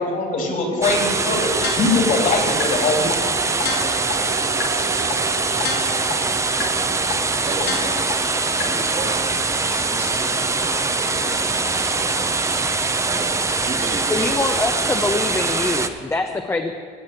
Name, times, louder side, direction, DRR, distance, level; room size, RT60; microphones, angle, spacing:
voice 1, 0.0-3.1 13.1-13.2, left 3 dB, 50° left, 3 dB, 2.9 m, -22 dB
voice 2, 0.7-2.3 7.4-8.2 8.6-9.4 9.8-12.2 13.0-14.9, right 3 dB, 35° right, 3 dB, 1.7 m, -34 dB
sound 1, 0.8-15.9, right 3 dB, 15° right, 0.8 m, -22 dB
sound 2, 1.6-2.1 2.6-2.7 3.1-3.2 3.6-4.1 4.6-4.7 5.1-5.2 5.6-6.1 6.6-6.7 7.1-7.2 7.6-8.1 8.6-8.7, left 6 dB, 70° left, 1.7 m, -27 dB
sound 3, 3.0-7.0, right 10 dB, 55° right, 0.8 m, -34 dB
voice 3, 14.1-16.8, left 3 dB, 15° left, 5 dB, 0.8 m, -24 dB
15.5 x 6.3 x 9.1 m, 2.1 s
cardioid pair, 110°, 17 cm